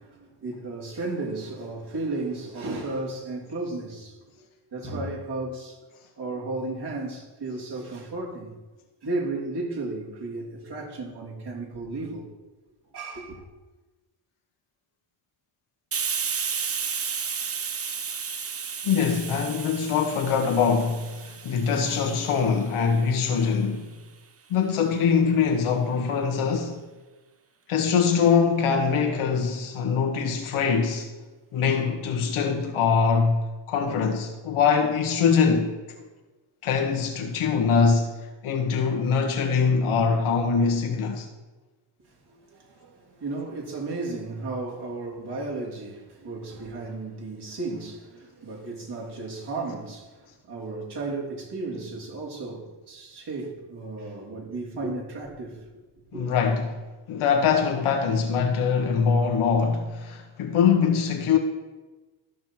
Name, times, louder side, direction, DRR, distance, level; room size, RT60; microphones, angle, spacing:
voice 1, 0.0-5.9 6.2-8.5 9.0-12.3 12.9-13.4 42.2-55.8 56.1-56.3, right 2 dB, 50° right, 3.1 m, -34 dB
Hiss, 15.9-23.3, right 6 dB, 30° right, 0.7 m, -33 dB
voice 2, 18.8-23.9 24.5-26.8 27.7-31.1 31.5-33.4 33.7-35.7 36.0-36.1 36.6-38.2 38.4-41.3 56.1-56.8 57.1-61.4, left 6 dB, 75° left, 1.8 m, -23 dB
14.0 x 5.7 x 4.5 m
cardioid pair, 85°, 50 cm